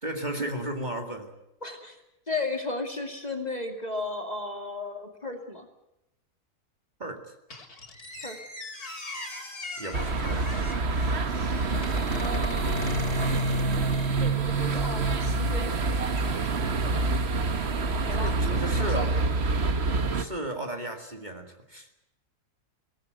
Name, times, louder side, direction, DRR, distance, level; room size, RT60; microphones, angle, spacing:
voice 1, 0.0-1.3 7.0-7.3 9.8-10.5 18.1-19.1 20.1-21.9, right 1 dB, 30° right, 4 dB, 2.2 m, -34 dB
voice 2, 1.6-2.0 2.3-5.7 8.2-8.4 12.2-13.6 14.2-17.1 17.9-18.4 18.7-19.3, left 2 dB, 25° left, 4 dB, 2.6 m, -35 dB
Squeak, 7.5-14.4, left 2 dB, 70° left, 3.8 m, -41 dB
sound 1, 9.9-20.2, right 3 dB, 45° right, 1.4 m, -26 dB
22.0 x 18.0 x 9.1 m, 0.88 s
omnidirectional pair, 1.7 m